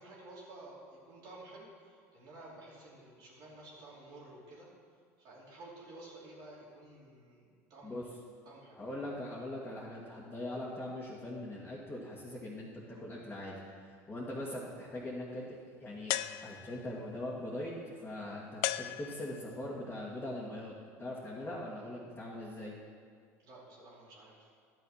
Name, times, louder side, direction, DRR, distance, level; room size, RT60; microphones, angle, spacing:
voice 1, 0.0-4.7 5.2-8.1 8.4-8.8 23.4-24.5, right 2 dB, 60° right, -6 dB, 3.1 m, -52 dB
voice 2, 8.7-13.6 13.8-16.2 16.4-22.7, left 1 dB, 20° left, -6 dB, 2.2 m, -41 dB
sound 1, 16.1-17.0 18.6-19.6, left 15 dB, 70° left, 0.4 m, -36 dB
11.5 x 6.9 x 5.8 m, 2.1 s
hypercardioid pair, 85°, 8 cm